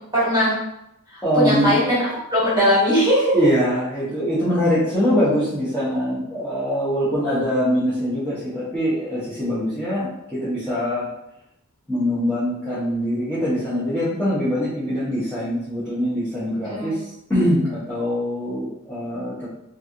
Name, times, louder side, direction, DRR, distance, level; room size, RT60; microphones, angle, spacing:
voice 1, 0.1-0.5 1.3-2.0 2.3-3.3 16.6-16.9, equal, 20° right, -7 dB, 1.2 m, -19 dB
voice 2, 1.2-1.9 3.3-11.1 11.9-19.5, equal, 10° left, -12 dB, 0.7 m, -23 dB
3.0 x 2.6 x 2.4 m, 0.82 s
head